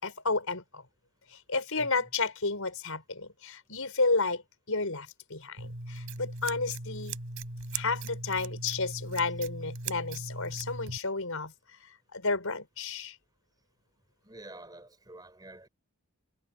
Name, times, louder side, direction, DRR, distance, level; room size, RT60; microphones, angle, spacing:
voice 1, 0.0-0.8 1.3-4.4 4.7-7.2 7.7-11.5 11.8-13.2, left 3 dB, 70° left, 5.0 m, -32 dB
voice 2, 1.8-2.1 14.2-15.7, right 1 dB, 20° right, 5.1 m, -48 dB
Scissors, 5.6-11.0, right 3 dB, 65° right, 4.4 m, -39 dB
head